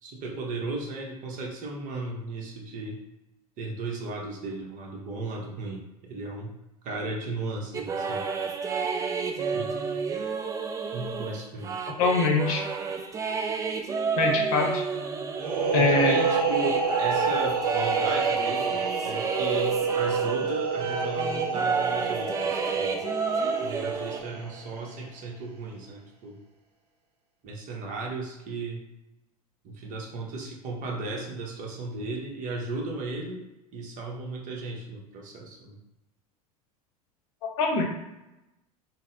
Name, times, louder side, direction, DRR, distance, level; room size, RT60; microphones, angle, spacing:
voice 1, 0.0-3.0 3.6-6.5 6.8-8.2 9.4-9.8 10.9-11.7 15.7-23.0 23.6-26.4 27.4-28.8 29.6-33.4 33.7-35.8, right 2 dB, 40° right, -1 dB, 0.9 m, -35 dB
sound 1, 7.7-20.5 20.8-24.2, right 5 dB, 15° right, 0.3 m, -30 dB
voice 2, 12.0-12.6 14.2-14.8 15.7-16.2 37.6-37.8, left 4 dB, 60° left, 2 dB, 0.7 m, -23 dB
sound 2, 15.4-24.9, right 5 dB, 85° right, 0.5 m, -28 dB
3.8 x 2.1 x 2.6 m, 0.95 s
hypercardioid pair, 80°, 20 cm